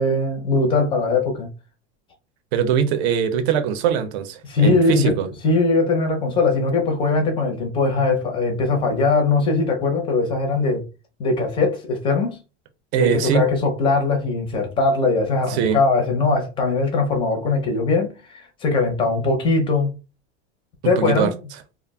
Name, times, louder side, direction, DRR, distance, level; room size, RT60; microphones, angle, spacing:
voice 1, 0.0-1.5 4.4-5.1 5.4-10.8 11.2-12.4 13.0-19.9 20.8-21.3, left 3 dB, 15° left, 0.4 m, -20 dB
voice 2, 2.5-5.3 12.9-13.4 15.5-15.8 20.8-21.3, right 8 dB, 70° right, 0.6 m, -21 dB
2.3 x 2.0 x 3.4 m
supercardioid pair, 160°, 34 cm